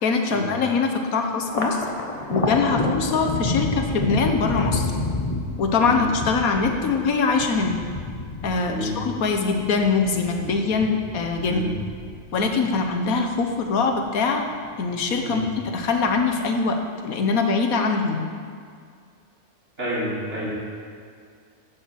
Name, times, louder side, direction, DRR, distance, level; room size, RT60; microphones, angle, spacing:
voice 1, 0.0-1.8 2.3-4.9 5.6-7.8 8.4-11.6 12.3-14.4 14.8-15.4 15.7-18.3, left 4 dB, 90° left, 4 dB, 1.6 m, -23 dB
Thunder, 1.4-14.1 14.5-15.3 15.6-16.5, left 2 dB, 30° left, 1.1 m, -30 dB
voice 2, 8.7-9.0 10.7-10.8 11.4-11.7 15.2-15.4 19.8-20.5, equal, 55° right, -9 dB, 4.2 m, -30 dB
11.0 x 7.4 x 7.5 m, 2.2 s
omnidirectional pair, 1.4 m